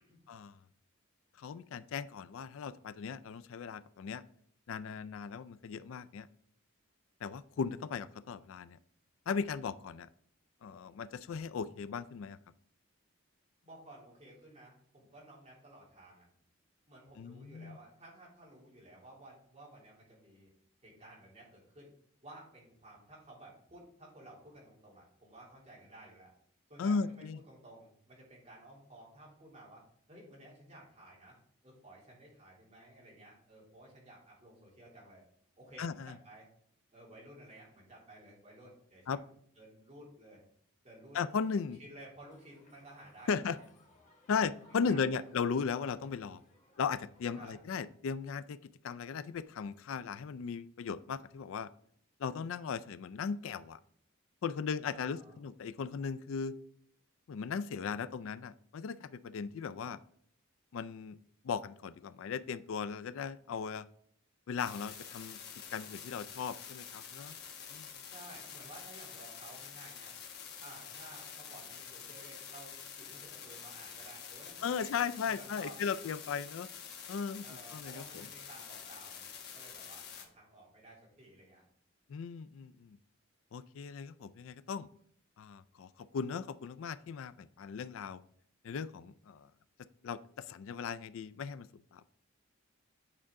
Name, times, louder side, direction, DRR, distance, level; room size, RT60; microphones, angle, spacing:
voice 1, 1.4-4.2 4.7-6.3 7.2-8.8 9.3-10.1 10.6-12.4 17.2-17.8 26.8-27.4 35.8-36.2 39.1-39.2 41.1-41.8 43.3-43.6 44.3-46.4 46.8-48.6 48.8-51.7 52.2-53.8 54.4-56.5 57.3-60.0 60.7-61.2 61.4-63.9 64.5-65.4 65.7-67.3 67.7-67.9 74.6-76.7 77.1-77.4 77.7-78.3 82.1-83.0 83.5-84.9 85.4-88.2 88.6-89.5 90.0-92.1, left 6 dB, 70° left, 16 dB, 0.3 m, -37 dB
voice 2, 13.6-16.3 16.9-20.5 20.8-21.9 22.2-26.3 26.7-29.8 30.1-31.4 31.6-35.2 35.6-36.5 36.9-40.4 40.8-41.2 41.8-43.6 44.7-45.2 47.3-47.7 54.9-55.4 68.1-70.1 70.6-76.0 77.4-81.6, right 1 dB, 30° right, -4 dB, 2.8 m, -55 dB
Crowd, 42.3-47.6, left 1 dB, 35° left, 1.4 m, -65 dB
sound 1, 64.6-80.2, left 7 dB, 50° left, 1.2 m, -48 dB
8.8 x 5.7 x 3.6 m, 0.64 s
head